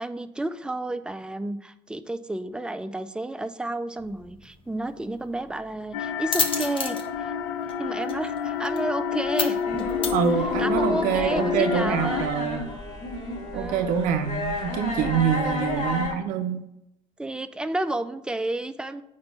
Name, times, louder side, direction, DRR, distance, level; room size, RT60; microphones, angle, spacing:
voice 1, 0.0-7.3 7.8-9.9 10.6-12.3 13.5-14.0 15.4-15.8 17.2-19.0, right 1 dB, 5° right, 10 dB, 0.4 m, -31 dB
sound 1, 4.0-10.9, left 4 dB, 40° left, 0.8 m, -33 dB
sound 2, 5.9-12.2, left 6 dB, 85° left, 0.5 m, -28 dB
sound 3, 9.7-16.1, left 2 dB, 55° left, 1.9 m, -32 dB
voice 2, 10.1-12.7 13.5-16.6, right 8 dB, 75° right, 6 dB, 0.5 m, -25 dB
4.3 x 4.3 x 5.7 m, 0.84 s
supercardioid pair, 75°, 14 cm